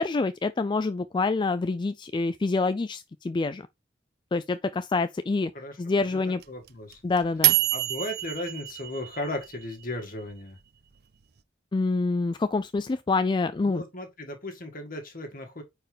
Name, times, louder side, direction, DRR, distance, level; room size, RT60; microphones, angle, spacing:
voice 1, 0.0-3.7 4.3-5.5 5.8-6.4 7.0-7.6 11.7-13.8, left 3 dB, 25° left, 0.3 m, -26 dB
voice 2, 6.1-7.0 7.7-10.6 13.6-15.6, left 1 dB, 50° left, 2.0 m, -36 dB
sound 1, 6.4-9.6, right 16 dB, 60° right, 0.6 m, -26 dB
9.1 x 4.5 x 3.4 m
head